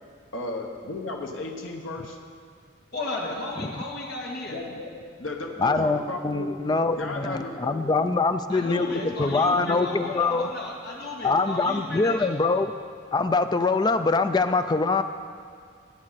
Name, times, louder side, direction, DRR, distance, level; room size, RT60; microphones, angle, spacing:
voice 1, 0.3-2.2 4.5-4.9 5.2-8.0 8.6-9.8, left 2 dB, 70° left, 1 dB, 1.2 m, -35 dB
voice 2, 2.9-4.6 8.5-12.3, left 2 dB, 50° left, -2 dB, 2.0 m, -34 dB
voice 3, 5.6-10.5 11.2-12.7 13.1-15.0, left 3 dB, 20° left, 9 dB, 0.3 m, -24 dB
17.0 x 8.6 x 4.1 m, 2.1 s
head